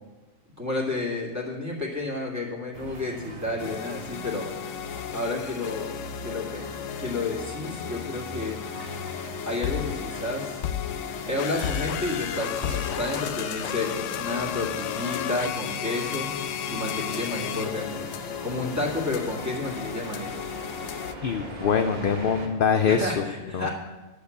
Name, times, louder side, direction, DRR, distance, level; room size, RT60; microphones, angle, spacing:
voice 1, 0.6-4.5 5.1-5.9 6.2-8.6 9.4-10.7 11.1-18.1 18.4-20.4 22.9-23.7, left 2 dB, 15° right, -3 dB, 2.2 m, -31 dB
sound 1, 2.7-22.5, right 1 dB, 50° right, 1.8 m, -41 dB
sound 2, 3.6-21.2, left 9 dB, 80° left, 0.9 m, -33 dB
voice 2, 21.2-23.2 23.5-23.7, left 6 dB, 60° left, 7 dB, 0.6 m, -24 dB
10.5 x 5.9 x 8.3 m, 1.2 s
omnidirectional pair, 1.3 m